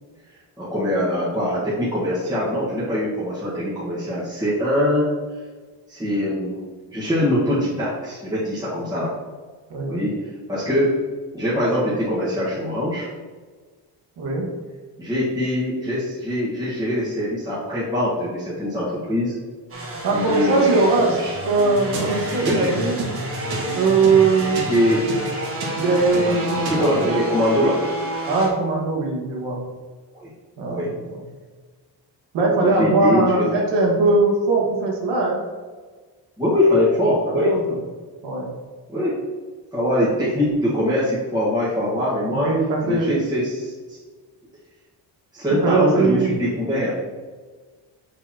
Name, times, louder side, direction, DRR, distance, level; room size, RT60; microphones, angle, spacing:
voice 1, 0.6-5.1 5.9-9.1 9.9-11.0 11.3-13.1 15.0-19.3 20.1-21.3 22.4-22.7 24.7-25.0 26.6-27.8 30.1-30.3 30.7-30.9 32.5-33.4 36.4-37.5 38.9-39.2 39.7-42.5 42.8-44.0 45.3-46.9, left 1 dB, 10° right, -10 dB, 1.5 m, -23 dB
voice 2, 14.2-14.5 20.0-21.2 21.5-23.0 23.7-24.6 25.8-27.3 28.3-29.6 30.6-31.2 32.3-35.4 37.3-37.8 38.2-38.5 42.3-43.1 45.6-46.3, right 3 dB, 90° right, -1 dB, 1.8 m, -20 dB
sound 1, 19.7-28.5, right 1 dB, 35° right, 1.3 m, -30 dB
sound 2, 21.5-27.2, right 2 dB, 65° right, 1.6 m, -31 dB
6.7 x 6.0 x 2.9 m, 1.4 s
cardioid pair, 155°, 41 cm